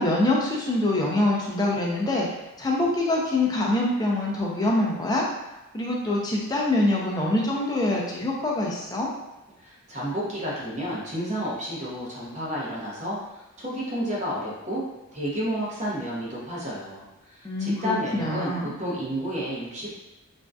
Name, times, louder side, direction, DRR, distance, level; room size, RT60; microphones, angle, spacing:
voice 1, 0.0-2.3 2.6-5.3 5.7-9.1 17.4-18.8, left 2 dB, 20° left, -3 dB, 0.4 m, -24 dB
voice 2, 9.6-14.8 15.1-19.9, equal, 35° right, -6 dB, 0.7 m, -31 dB
2.5 x 2.2 x 2.2 m, 1.0 s
head